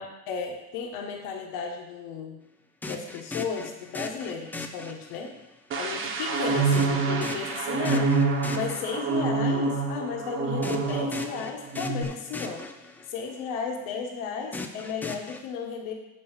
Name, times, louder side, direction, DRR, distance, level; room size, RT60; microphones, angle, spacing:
voice 1, 0.0-2.4 2.9-5.3 5.8-8.1 8.5-12.6 13.1-15.9, left 6 dB, 85° left, 2 dB, 1.3 m, -34 dB
sound 1, 2.8-5.5 6.7-9.3 10.6-13.3 14.5-15.4, left 3 dB, 5° left, 0.4 m, -38 dB
sound 2, 5.7-11.4 11.7-12.0, right 4 dB, 40° right, 1.1 m, -26 dB
7.4 x 5.4 x 7.3 m, 0.99 s
cardioid pair, 160°, 31 cm